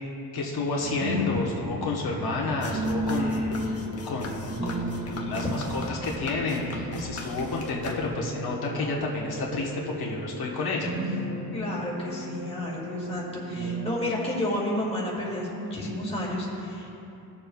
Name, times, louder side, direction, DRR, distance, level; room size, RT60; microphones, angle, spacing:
voice 1, 0.3-3.5 4.0-11.2, left 3 dB, 75° left, -3 dB, 1.2 m, -30 dB
sound 1, 0.8-14.1, equal, 55° right, 1.6 m, -34 dB
sound 2, 2.6-8.4, left 2 dB, 40° left, 1.0 m, -39 dB
voice 2, 11.5-17.0, left 1 dB, 15° left, -5 dB, 2.1 m, -31 dB
19.0 x 7.0 x 2.3 m, 2.8 s
wide cardioid pair, 145°, 38 cm